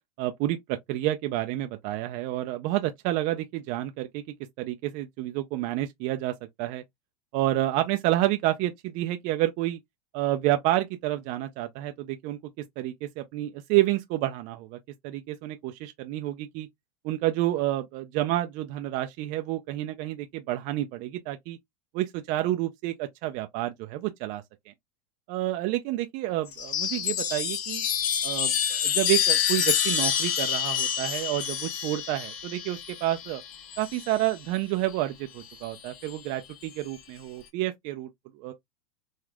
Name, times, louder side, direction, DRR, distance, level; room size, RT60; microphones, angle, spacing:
voice 1, 0.2-4.2 4.6-6.8 7.3-9.8 10.1-14.8 15.0-16.7 17.0-21.6 21.9-24.7 25.3-27.8 28.2-33.4 33.8-38.1 38.4-38.5, right 15 dB, 50° right, 0.4 m, -29 dB
Chime, 26.5-34.3 35.5-36.1, left 9 dB, 55° left, 0.9 m, -28 dB
3.4 x 2.4 x 2.2 m
hypercardioid pair, 105°, 18 cm